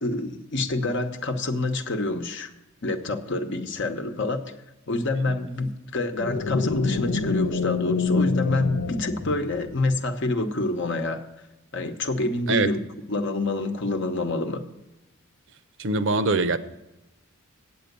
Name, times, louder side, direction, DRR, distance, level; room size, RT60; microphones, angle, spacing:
voice 1, 0.0-2.5 2.8-4.5 4.9-11.3 11.7-12.8 13.1-14.7, left 2 dB, 60° left, 0.9 m, -27 dB
sound 1, 6.2-9.9, left 4 dB, 85° left, 0.7 m, -27 dB
voice 2, 15.8-16.6, right 3 dB, 60° right, 0.7 m, -23 dB
8.7 x 8.2 x 6.6 m
head